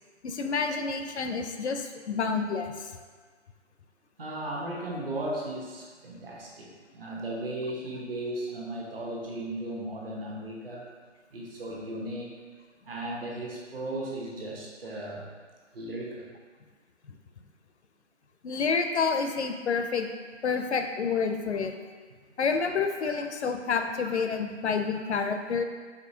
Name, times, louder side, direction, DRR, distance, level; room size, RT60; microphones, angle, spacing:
voice 1, 0.2-2.9 17.1-17.2 18.4-20.1 20.4-21.7 22.4-25.6, left 5 dB, 65° left, 5 dB, 0.5 m, -29 dB
voice 2, 4.2-6.7 6.9-10.9 11.3-12.3 12.8-15.2 15.7-16.3, right 1 dB, 50° right, -3 dB, 1.0 m, -36 dB
4.9 x 3.2 x 2.7 m, 1.5 s
figure-of-eight pair, 155°, 37 cm